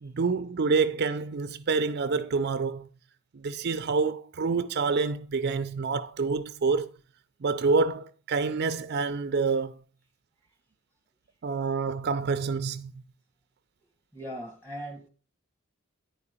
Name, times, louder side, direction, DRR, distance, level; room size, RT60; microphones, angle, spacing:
voice 1, 0.0-2.9 3.3-6.9 7.4-9.7 11.4-12.9, right 4 dB, 55° right, 0.5 m, -27 dB
voice 2, 14.1-15.1, equal, 10° left, 2.1 m, -39 dB
10.5 x 4.9 x 5.5 m
head